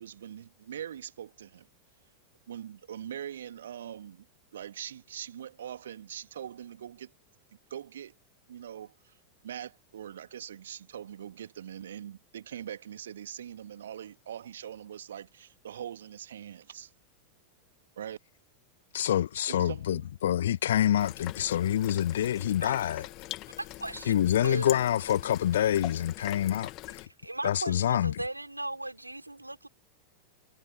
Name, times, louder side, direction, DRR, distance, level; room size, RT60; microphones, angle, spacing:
voice 1, 0.0-1.7 2.5-4.3 4.5-7.1 7.7-8.1 8.5-9.2 9.4-16.9 18.0-18.2 19.5-20.1, right 10 dB, 65° right, 2.3 m, -42 dB
voice 2, 18.9-23.0 24.1-26.7 27.4-28.1, left 11 dB, 60° left, 0.6 m, -26 dB
sound 1, 21.0-27.1, left 19 dB, 40° left, 2.4 m, -43 dB
voice 3, 23.6-24.1 24.4-24.7 27.1-29.7, right 1 dB, 85° right, 3.8 m, -37 dB
figure-of-eight pair, 90°, 0 cm